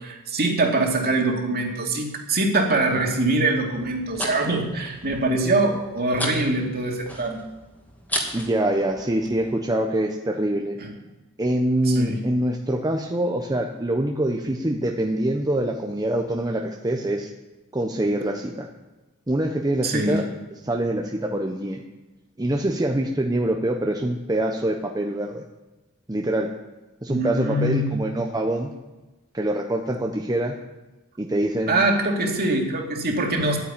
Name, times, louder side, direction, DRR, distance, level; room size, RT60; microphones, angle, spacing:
voice 1, 0.0-7.4 10.8-10.9 11.9-12.2 19.8-20.2 27.1-28.0 31.7-33.6, right 2 dB, 45° right, 1 dB, 2.5 m, -23 dB
sound 1, 3.7-9.5, equal, 10° left, 2.1 m, -35 dB
voice 2, 8.3-10.8 11.4-17.3 17.7-18.7 19.3-20.2 20.6-21.8 22.4-25.4 26.1-26.6 27.0-28.7 29.3-30.6 31.2-31.8, right 1 dB, 15° right, 1 dB, 0.9 m, -24 dB
11.5 x 9.4 x 8.9 m, 1.1 s
head